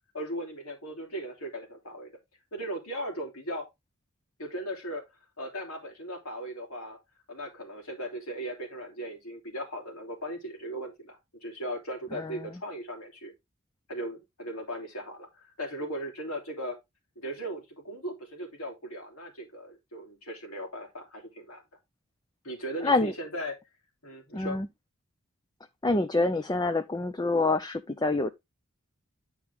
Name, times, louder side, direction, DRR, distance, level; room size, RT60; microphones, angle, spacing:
voice 1, 0.1-2.1 2.5-3.6 4.4-5.0 5.4-7.0 7.3-13.3 13.9-16.8 17.1-21.6 22.4-23.5 24.0-24.6, equal, 90° left, 3.0 m, -38 dB
voice 2, 24.3-24.7 25.8-28.3, left 2 dB, 20° left, 0.5 m, -26 dB
10.5 x 4.6 x 3.5 m
head